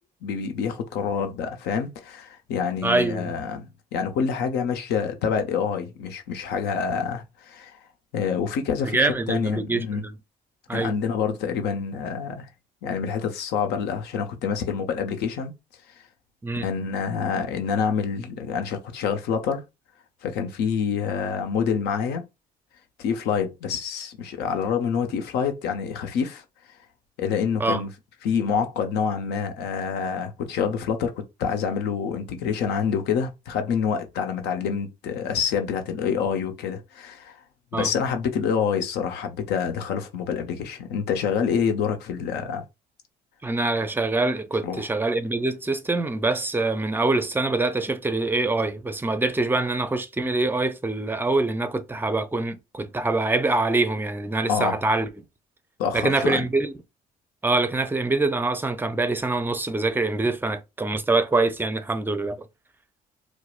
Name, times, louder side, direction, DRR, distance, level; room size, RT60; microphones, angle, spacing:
voice 1, 0.2-7.8 8.1-10.0 10.7-12.5 12.8-15.5 16.6-19.6 20.2-22.2 23.0-26.4 27.2-27.9 28.2-37.4 37.7-42.6 44.6-44.9 54.5-54.8 55.8-56.4, left 6 dB, 80° left, 0.8 m, -27 dB
voice 2, 2.8-3.4 8.8-10.1 10.7-11.0 16.4-16.7 27.6-27.8 37.7-37.9 43.4-55.1 55.9-56.7 57.4-62.5, right 2 dB, 10° right, 0.5 m, -24 dB
4.6 x 2.1 x 2.4 m
cardioid pair, 110°, 17 cm